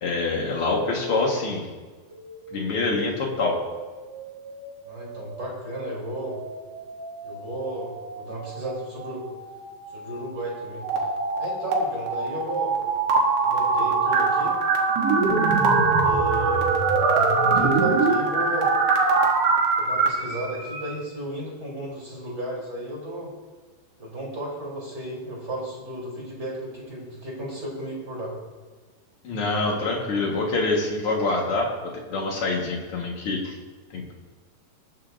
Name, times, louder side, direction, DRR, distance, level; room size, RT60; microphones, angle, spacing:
voice 1, 0.0-1.7 2.5-3.6 29.2-33.5 33.9-34.1, left 3 dB, 80° left, -1 dB, 1.2 m, -25 dB
sound 1, 2.1-21.0, right 1 dB, 45° right, 3.4 m, -39 dB
voice 2, 4.8-6.4 7.2-9.3 9.9-10.8 11.4-12.8 13.4-14.6 16.0-16.7 17.4-18.7 19.8-23.3 24.0-28.3, right 1 dB, 25° right, -4 dB, 3.2 m, -34 dB
sound 2, 10.8-11.8 12.1-20.1, right 4 dB, 80° right, 3.4 m, -21 dB
21.5 x 9.5 x 2.6 m, 1.4 s
omnidirectional pair, 4.9 m